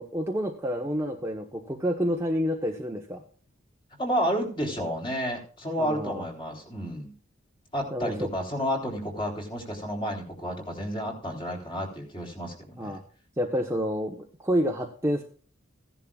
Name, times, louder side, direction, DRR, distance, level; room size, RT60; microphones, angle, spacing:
voice 1, 0.0-3.2 5.8-6.2 7.9-8.1 12.8-13.0 13.4-15.2, equal, 15° right, 1 dB, 1.1 m, -29 dB
voice 2, 4.0-7.1 7.7-13.0, equal, 25° left, 0 dB, 3.6 m, -31 dB
16.0 x 10.5 x 2.4 m, 0.40 s
head